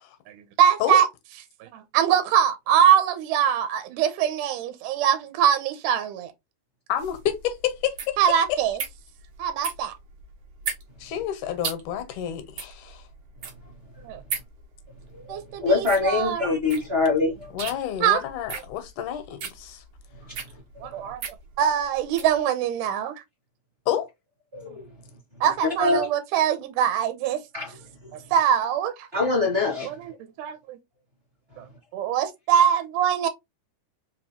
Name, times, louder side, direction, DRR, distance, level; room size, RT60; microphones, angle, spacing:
voice 1, 0.3-1.1 1.6-6.3 8.2-8.8 9.4-10.0 14.0-14.2 15.3-16.5 18.0-18.2 20.8-21.2 21.6-23.1 24.7-24.8 25.4-27.4 28.3-29.1 29.8-30.1 30.4-30.8 31.6-31.7 31.9-33.3, right 9 dB, 80° right, 2.2 m, -23 dB
voice 2, 6.9-8.2 8.5-8.6 11.0-13.0 17.5-19.8 23.9-24.1, left 10 dB, 80° left, 2.1 m, -29 dB
sound 1, 7.0-22.4, right 6 dB, 60° right, 1.6 m, -37 dB
voice 3, 15.6-17.5 24.5-24.8 25.8-26.0 27.5-27.7 29.1-29.9, left 3 dB, 35° right, 1.0 m, -23 dB
4.9 x 3.0 x 2.8 m
omnidirectional pair, 3.7 m